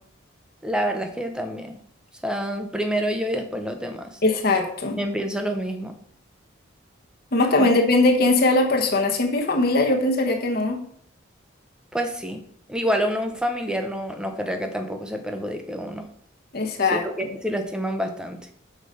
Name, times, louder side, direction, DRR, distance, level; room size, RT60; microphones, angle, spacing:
voice 1, 0.6-1.8 2.2-4.2 5.0-5.9 7.5-7.7 11.9-12.4 12.7-16.0 16.9-18.4, equal, 5° right, 5 dB, 0.8 m, -27 dB
voice 2, 4.2-5.0 7.3-10.8 16.5-17.0, left 2 dB, 45° left, 3 dB, 1.0 m, -20 dB
6.7 x 4.9 x 5.3 m, 0.63 s
head